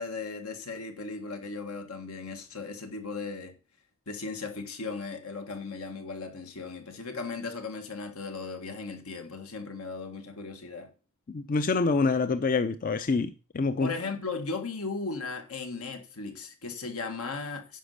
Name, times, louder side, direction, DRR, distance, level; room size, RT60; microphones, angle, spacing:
voice 1, 0.0-3.5 4.1-10.9 13.8-17.8, left 4 dB, 80° left, 1.8 m, -37 dB
voice 2, 11.3-13.9, left 4 dB, 40° left, 0.4 m, -26 dB
10.0 x 5.3 x 6.6 m
head